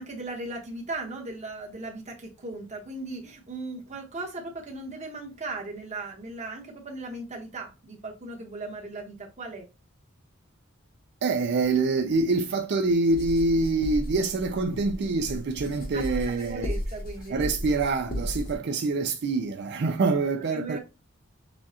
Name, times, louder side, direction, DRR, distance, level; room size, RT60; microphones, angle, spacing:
voice 1, 0.0-9.7 15.9-17.4 20.1-20.8, right 2 dB, 35° right, 1.2 m, -37 dB
voice 2, 11.2-16.7 17.3-20.8, right 3 dB, 55° right, 0.4 m, -25 dB
sound 1, 13.1-18.5, equal, 45° left, 0.9 m, -35 dB
6.9 x 2.3 x 2.8 m
head